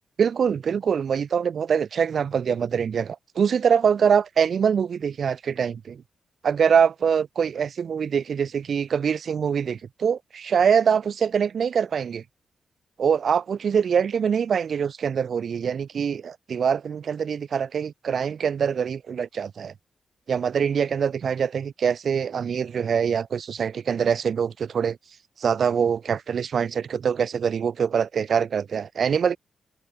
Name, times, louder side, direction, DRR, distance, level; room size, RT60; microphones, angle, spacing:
voice 1, 0.2-6.0 6.4-12.2 13.0-19.7 20.3-25.0 25.4-29.4, right 7 dB, 60° right, 0.5 m, -24 dB
open air
wide cardioid pair, 125°, 0 cm